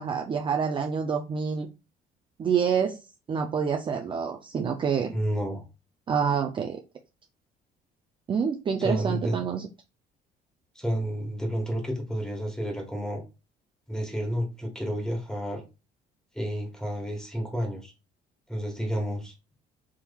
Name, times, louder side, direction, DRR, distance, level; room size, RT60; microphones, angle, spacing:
voice 1, 0.0-1.7 2.4-3.0 3.3-5.2 6.1-6.8 8.3-9.7, right 6 dB, 30° right, 3 dB, 0.4 m, -27 dB
voice 2, 5.1-5.6 8.8-9.4 10.7-13.2 13.9-15.6 16.3-17.9 18.5-19.3, equal, 5° left, 2 dB, 1.3 m, -30 dB
3.6 x 2.9 x 2.3 m, 0.28 s
cardioid pair, 110°, 17 cm